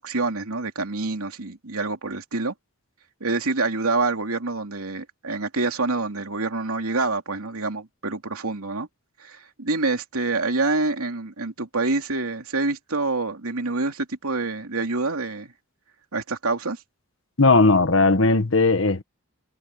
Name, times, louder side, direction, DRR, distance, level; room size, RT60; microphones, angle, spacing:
voice 1, 0.0-2.5 3.2-8.9 9.2-15.5 16.1-16.8, right 3 dB, 85° right, 2.9 m, -26 dB
voice 2, 17.4-19.0, left 3 dB, 60° left, 1.4 m, -17 dB
head